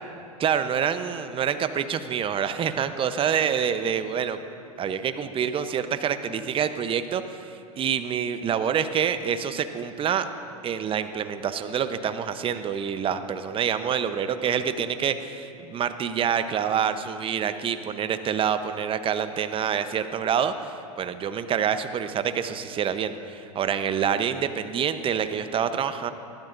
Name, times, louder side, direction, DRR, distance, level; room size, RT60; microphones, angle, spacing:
voice 1, 0.4-4.4 4.8-10.3 10.6-26.1, right 8 dB, 30° right, 10 dB, 0.8 m, -27 dB
21.0 x 14.5 x 2.6 m, 2.7 s
hypercardioid pair, 95°, 19 cm